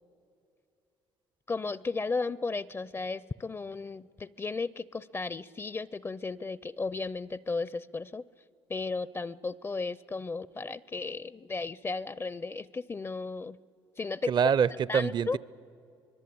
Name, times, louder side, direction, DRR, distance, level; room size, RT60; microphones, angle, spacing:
voice 1, 1.5-8.2 8.7-13.6 14.0-14.3 14.7-15.4, left 3 dB, 25° left, 20 dB, 0.5 m, -35 dB
voice 2, 14.3-15.4, right 7 dB, 50° right, 21 dB, 0.6 m, -25 dB
25.0 x 22.0 x 8.6 m, 2.6 s
supercardioid pair, 80°, 10 cm